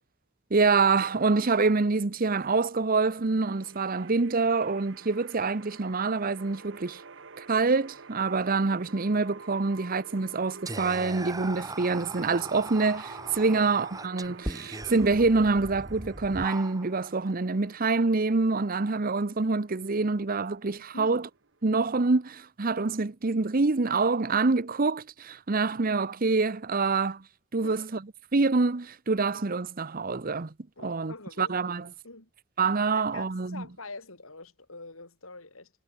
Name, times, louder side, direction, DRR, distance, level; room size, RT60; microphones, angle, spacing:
voice 1, 0.5-7.0 7.4-21.3 21.6-27.2 27.5-28.0 28.3-30.5 30.8-31.8 32.6-33.6, right 3 dB, 45° right, 0.8 m, -26 dB
sound 1, 3.2-22.2, right 4 dB, 65° right, 1.4 m, -49 dB
Whispering, 10.7-17.1, right 2 dB, 15° right, 2.7 m, -39 dB
voice 2, 30.8-31.6 32.0-32.3 32.9-35.7, left 3 dB, 85° left, 6.9 m, -44 dB
head